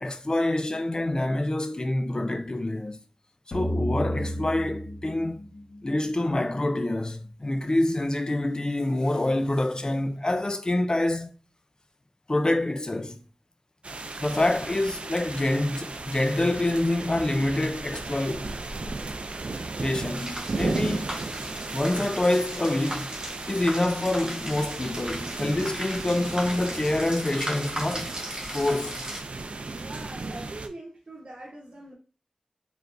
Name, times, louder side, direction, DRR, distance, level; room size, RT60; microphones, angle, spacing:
voice 1, 0.0-3.0 3.5-5.5 5.8-11.3 12.3-13.2 14.2-18.6 19.8-21.1 21.7-23.1 23.5-28.2 28.5-29.0, left 1 dB, 40° left, 0.5 m, -26 dB
sound 1, 3.5-6.8, equal, 70° left, 0.9 m, -32 dB
sound 2, 13.8-30.7, right 3 dB, 85° right, 0.4 m, -35 dB
sound 3, 20.2-29.2, right 1 dB, 40° right, 1.3 m, -37 dB
voice 2, 29.7-31.9, right 2 dB, 65° right, 1.1 m, -42 dB
4.4 x 3.3 x 2.6 m
wide cardioid pair, 65°, 2 cm